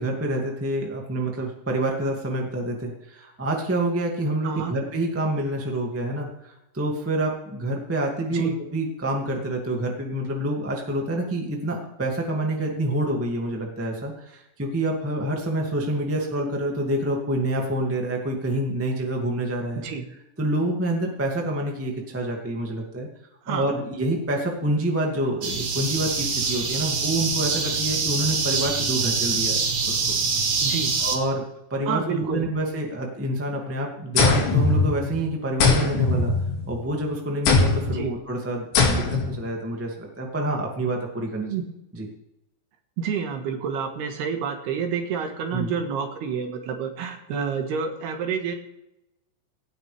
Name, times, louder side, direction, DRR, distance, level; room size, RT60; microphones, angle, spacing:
voice 1, 0.0-19.8 20.4-23.1 23.5-30.2 31.0-31.4 31.7-36.3 36.7-41.5 41.9-42.1 45.5-45.7, right 1 dB, 20° right, 0 dB, 0.4 m, -27 dB
voice 2, 23.5-23.8 30.6-30.9 31.9-32.5 37.9-38.1 41.4-41.6 43.0-48.6, right 6 dB, 70° right, 4 dB, 3.5 m, -29 dB
sound 1, 25.4-31.2, right 4 dB, 50° right, 2.0 m, -25 dB
sound 2, 34.2-35.2 35.6-36.9 37.5-38.0 38.8-39.4, left 4 dB, 80° left, 4.6 m, -20 dB
18.0 x 16.0 x 3.5 m, 0.89 s
omnidirectional pair, 5.1 m